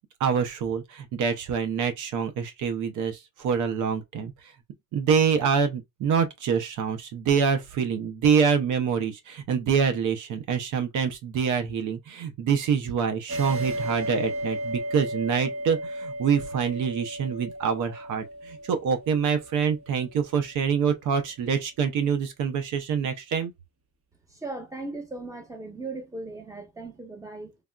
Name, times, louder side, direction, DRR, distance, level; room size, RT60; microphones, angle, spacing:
voice 1, 0.2-4.3 4.9-23.5, right 6 dB, 85° right, 0.7 m, -26 dB
sound 1, 13.3-20.4, equal, 45° right, 0.9 m, -34 dB
voice 2, 24.3-27.6, right 2 dB, 10° right, 1.1 m, -37 dB
3.4 x 2.4 x 2.2 m
cardioid pair, 90°, 30 cm